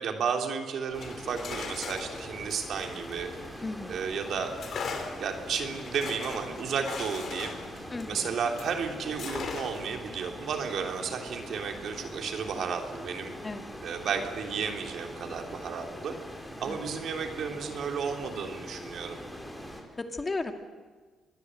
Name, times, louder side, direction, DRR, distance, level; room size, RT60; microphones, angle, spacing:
voice 1, 0.0-3.3 3.9-4.5 5.2-13.3 13.8-16.1 16.6-19.2, right 6 dB, 65° right, 4 dB, 3.3 m, -33 dB
sound 1, 0.9-3.9 4.6-8.8 9.2-10.0, left 5 dB, 60° left, 4.1 m, -39 dB
sound 2, 0.9-19.8, equal, 5° left, 4.6 m, -42 dB
voice 2, 3.6-4.0 7.9-8.3 13.4-13.7 16.7-16.8 20.0-20.5, left 3 dB, 25° left, 6 dB, 2.3 m, -35 dB
25.5 x 21.0 x 7.9 m, 1.4 s
cardioid pair, 90°, 0 cm